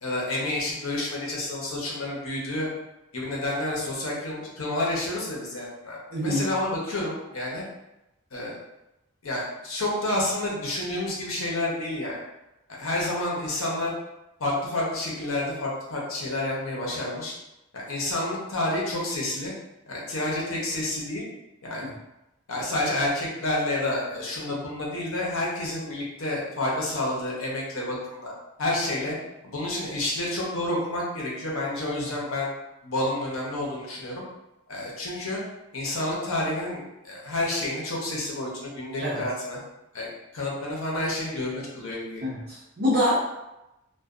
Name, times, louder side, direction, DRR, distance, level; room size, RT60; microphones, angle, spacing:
voice 1, 0.0-2.7 3.1-7.6 8.3-8.6 9.2-12.2 12.7-14.0 14.4-17.3 17.7-19.5 19.9-21.3 21.6-21.9 22.5-28.3 28.6-29.2 29.4-32.5 32.8-34.2 34.7-35.4 35.7-39.6 39.9-42.2, left 1 dB, 75° left, -4 dB, 0.8 m, -29 dB
voice 2, 6.1-6.4 39.0-39.2 42.2-43.2, left 1 dB, 50° right, -10 dB, 0.6 m, -25 dB
2.6 x 2.2 x 2.4 m, 0.94 s
head